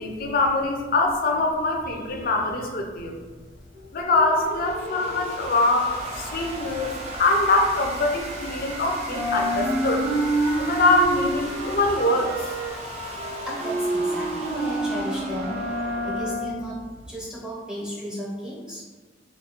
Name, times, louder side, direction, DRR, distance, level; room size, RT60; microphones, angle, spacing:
voice 1, 0.0-3.2 3.9-6.9 7.2-10.1 10.6-12.5, left 2 dB, 55° left, 2 dB, 0.4 m, -23 dB
sound 1, 3.7-16.4, right 1 dB, 35° right, 0.5 m, -36 dB
sound 2, 5.9-8.7 9.0-17.2, right 1 dB, 85° right, 0.8 m, -29 dB
voice 2, 13.4-16.8 17.1-18.8, equal, 5° right, -6 dB, 0.7 m, -34 dB
3.1 x 2.3 x 2.8 m, 1.4 s
head